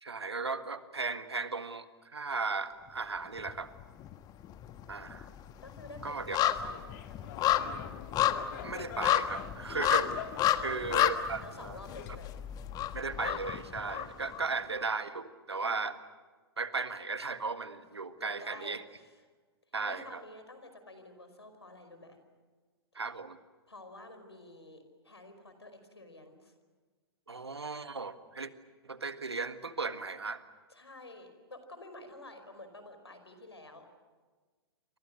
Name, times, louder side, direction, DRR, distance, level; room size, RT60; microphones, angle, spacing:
voice 1, 0.0-3.7 4.9-5.3 6.0-6.4 8.6-10.1 10.6-11.8 12.9-16.0 16.6-18.8 19.7-20.2 22.9-23.4 27.3-28.5 28.8-30.4, right 4 dB, 85° right, 11 dB, 1.7 m, -36 dB
sound 1, 3.4-4.2 4.4-14.4 14.8-14.9, left 11 dB, 30° left, 1.4 m, -31 dB
voice 2, 5.6-7.5 10.5-12.3 14.4-14.7 18.2-19.1 19.8-22.2 23.7-26.5 30.7-33.9, left 2 dB, 85° left, 8 dB, 5.0 m, -50 dB
Laughter, 6.7-12.6, left 9 dB, 45° left, 2.5 m, -46 dB
28.5 x 25.5 x 6.6 m, 1.4 s
figure-of-eight pair, 105°, 13 cm